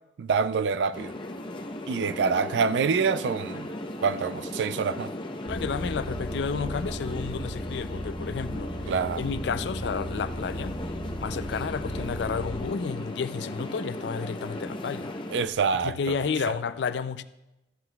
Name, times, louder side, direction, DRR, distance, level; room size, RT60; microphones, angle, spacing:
voice 1, 0.2-1.1 1.9-3.7 4.0-5.1 8.9-9.2 15.3-16.1, right 5 dB, 85° right, 0.4 m, -26 dB
sound 1, 0.9-15.5, left 1 dB, 25° left, 0.6 m, -37 dB
voice 2, 5.5-8.7 9.2-10.7 11.2-15.1 15.8-17.2, left 5 dB, 80° left, 0.4 m, -31 dB
sound 2, 5.5-12.6, equal, 10° right, 1.8 m, -37 dB
14.0 x 7.7 x 2.3 m
head